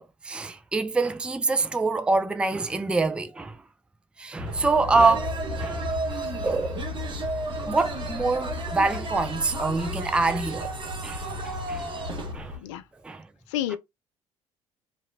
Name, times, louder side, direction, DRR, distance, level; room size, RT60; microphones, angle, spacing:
voice 1, 0.0-3.6 4.2-5.8 6.4-6.9 7.7-10.7 11.0-11.9 12.3-12.5 13.0-13.2, right 3 dB, 5° right, 0.4 m, -25 dB
sound 1, 4.4-12.6, left 3 dB, 75° right, 1.6 m, -36 dB
sound 2, 4.5-12.3, right 3 dB, 30° right, 1.0 m, -34 dB
voice 2, 12.6-12.8 13.5-13.8, left 12 dB, 70° left, 0.4 m, -29 dB
2.9 x 2.8 x 2.7 m
figure-of-eight pair, 60°, 16 cm